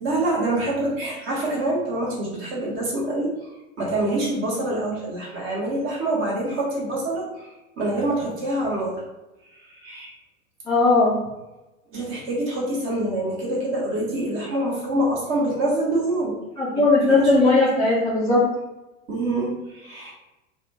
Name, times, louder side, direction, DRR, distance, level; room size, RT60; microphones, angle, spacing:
voice 1, 0.0-3.5 3.8-7.5 7.8-9.0 9.7-10.1 11.9-16.3 17.1-17.9 19.1-20.1, right 1 dB, 30° right, -4 dB, 1.1 m, -26 dB
voice 2, 10.7-11.2 16.6-18.5, left 3 dB, 10° left, -8 dB, 0.4 m, -18 dB
2.7 x 2.3 x 2.8 m, 1.0 s
figure-of-eight pair, 90°, 40 cm